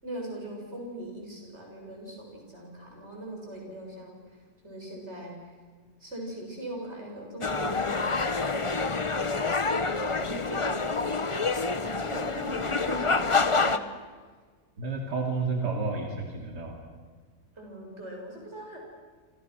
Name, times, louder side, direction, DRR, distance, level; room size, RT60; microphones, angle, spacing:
voice 1, 0.0-5.6 6.0-8.5 8.8-11.3 11.8-13.9 17.6-18.8, right 1 dB, 40° right, 0 dB, 7.6 m, -41 dB
sound 1, 7.4-13.8, left 4 dB, 25° left, 0.7 m, -27 dB
voice 2, 14.8-16.8, right 4 dB, 85° right, 1 dB, 3.5 m, -31 dB
29.0 x 27.0 x 6.4 m, 1.5 s
omnidirectional pair, 1.7 m